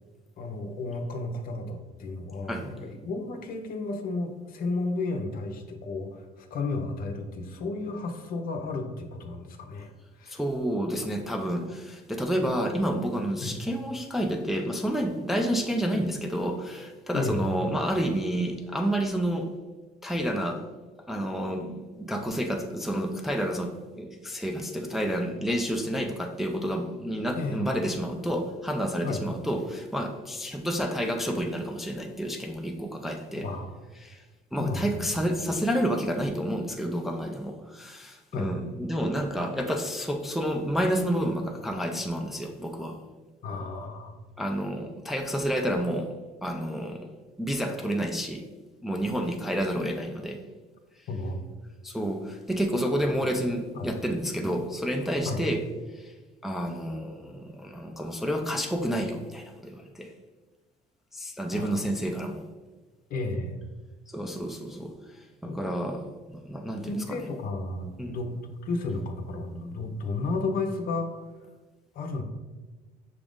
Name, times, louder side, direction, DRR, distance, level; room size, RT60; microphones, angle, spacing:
voice 1, 0.4-10.4 13.4-13.5 17.1-17.5 27.4-27.7 29.0-29.2 33.3-33.7 34.5-35.2 38.3-38.5 43.4-44.2 51.1-51.4 53.7-53.9 55.2-55.4 61.5-61.9 63.1-63.6 65.4-65.6 66.9-71.2 71.9-72.2, left 3 dB, 60° left, 5 dB, 0.7 m, -33 dB
voice 2, 10.3-19.5 20.0-20.7 21.1-33.5 34.0-34.2 34.5-43.0 44.4-47.1 47.4-48.4 48.8-50.4 51.8-55.6 55.9-56.1 56.4-60.1 61.1-62.4 64.1-67.2 68.0-68.1, equal, ahead, 3 dB, 0.4 m, -30 dB
5.9 x 2.5 x 3.5 m, 1.2 s
cardioid pair, 110°, 17 cm